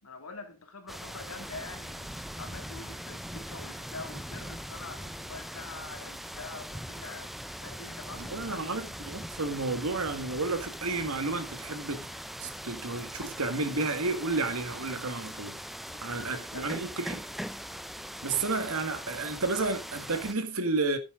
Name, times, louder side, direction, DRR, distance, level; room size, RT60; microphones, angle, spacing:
voice 1, 0.0-9.1 15.8-17.0, left 3 dB, 75° left, 2.2 m, -46 dB
sound 1, 0.9-20.3, equal, ahead, 0.5 m, -41 dB
voice 2, 8.3-12.1 12.4-15.5 16.0-17.2 18.2-21.0, right 3 dB, 70° right, 1.7 m, -31 dB
10.5 x 8.7 x 3.7 m
head